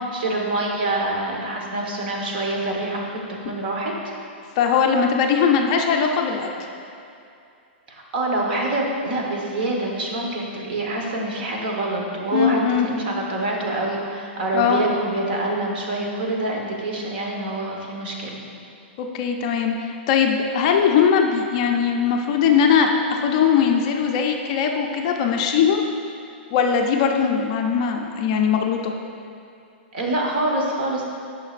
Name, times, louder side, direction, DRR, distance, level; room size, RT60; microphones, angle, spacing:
voice 1, 0.1-3.9 7.9-18.4 29.9-31.0, right 2 dB, 55° right, -1 dB, 1.1 m, -26 dB
voice 2, 4.6-6.5 12.3-12.9 14.5-14.8 19.0-25.8 26.5-28.9, left 7 dB, 35° left, 2 dB, 0.4 m, -20 dB
8.9 x 5.7 x 2.5 m, 2.6 s
hypercardioid pair, 170°, 6 cm